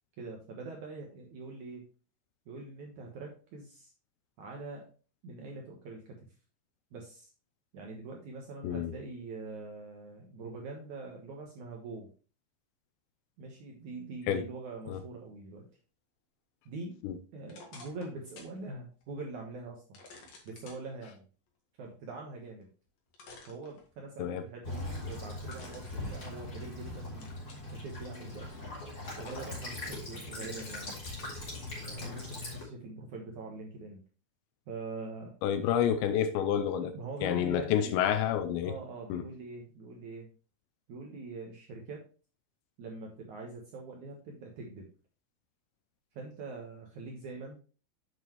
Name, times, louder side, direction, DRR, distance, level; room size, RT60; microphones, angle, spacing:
voice 1, 0.2-1.8 2.5-3.9 4.4-4.9 5.2-6.2 6.9-7.3 7.7-12.1 13.4-15.7 16.7-20.0 20.4-21.2 21.8-22.7 23.5-27.5 27.8-28.6 29.2-31.0 31.8-34.0 34.7-35.3 36.8-38.0 38.6-40.3 40.9-42.1 42.8-44.9 46.1-47.6, right 3 dB, 75° right, 1.7 m, -43 dB
sound 1, 17.5-18.6 19.0-19.1 19.9-20.8 22.6-22.7 23.1-24.2 25.5-26.8 27.2-27.7 28.2-28.9 29.2-29.9 30.3-31.3 32.0-32.2, left 3 dB, 50° left, 2.1 m, -52 dB
Child speech kid speaking / Bird vocalization bird call bird song / Stream, 24.6-32.6, left 2 dB, 20° left, 3.3 m, -41 dB
voice 2, 35.4-36.9 37.2-38.7 39.1-39.2, left 9 dB, 80° left, 2.7 m, -29 dB
8.3 x 7.4 x 3.0 m
omnidirectional pair, 5.4 m